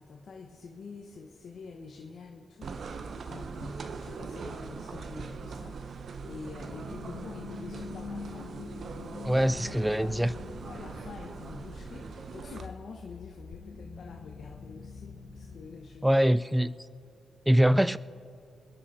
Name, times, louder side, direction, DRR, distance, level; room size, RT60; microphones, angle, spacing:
voice 1, 0.0-5.8 6.3-8.5 9.3-9.4 9.7-10.2 10.6-16.2, left 4 dB, 65° left, 1.1 m, -47 dB
sound 1, 2.6-12.7, right 5 dB, 65° right, 0.9 m, -41 dB
sound 2, 6.2-15.8, left 5 dB, 85° left, 1.4 m, -45 dB
voice 2, 9.2-10.3 16.0-16.7 17.5-18.0, equal, 5° right, 0.4 m, -23 dB
27.5 x 10.0 x 4.3 m
cardioid pair, 80°, 0 cm